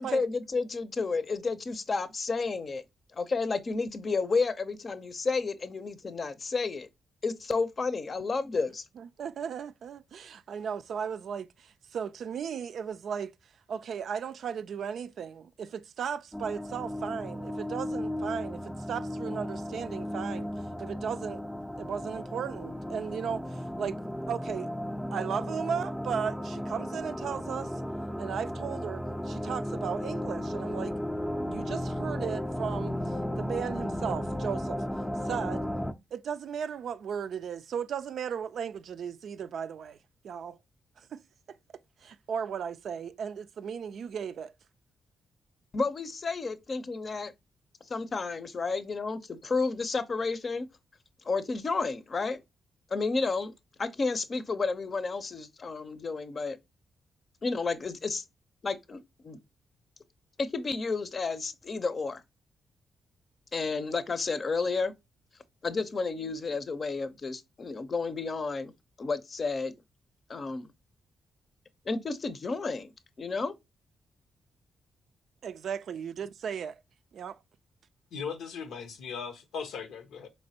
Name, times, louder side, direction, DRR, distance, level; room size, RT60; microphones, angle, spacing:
voice 1, 0.0-2.8 3.2-6.9 7.2-8.8 45.7-47.3 47.9-50.7 51.3-52.4 52.9-53.5 53.8-56.6 57.4-58.2 58.6-59.4 60.4-62.2 63.5-64.9 65.6-68.7 69.0-69.7 70.3-70.7 71.9-72.9 73.2-73.5, left 4 dB, 50° left, 0.6 m, -31 dB
voice 2, 9.0-13.3 13.7-20.5 20.8-21.4 21.8-24.0 24.3-24.7 25.1-27.7 28.2-30.9 31.5-34.8 35.2-35.7 36.1-40.0 40.2-40.6 41.0-41.2 41.5-41.6 42.0-44.5 75.4-76.8 77.1-77.4, right 7 dB, 75° right, 0.3 m, -36 dB
sound 1, 16.3-35.9, equal, 5° left, 0.4 m, -35 dB
voice 3, 78.1-80.3, left 6 dB, 85° left, 0.6 m, -38 dB
4.3 x 3.2 x 2.7 m
cardioid pair, 60°, 0 cm